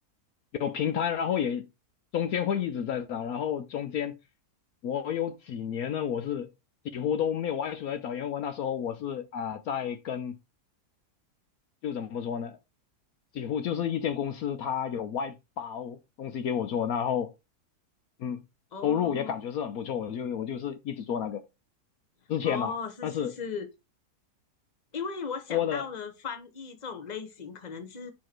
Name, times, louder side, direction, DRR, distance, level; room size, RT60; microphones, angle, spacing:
voice 1, 0.6-1.7 2.1-4.2 4.8-6.5 6.9-10.3 11.8-12.6 13.3-17.3 18.2-18.4 18.8-21.4 22.3-22.7 23.0-23.3 25.5-25.8, left 8 dB, 70° left, 1.1 m, -30 dB
voice 2, 18.7-19.3 22.4-23.7 24.9-28.1, left 5 dB, 30° left, 1.1 m, -37 dB
7.5 x 4.6 x 4.4 m
omnidirectional pair, 1.7 m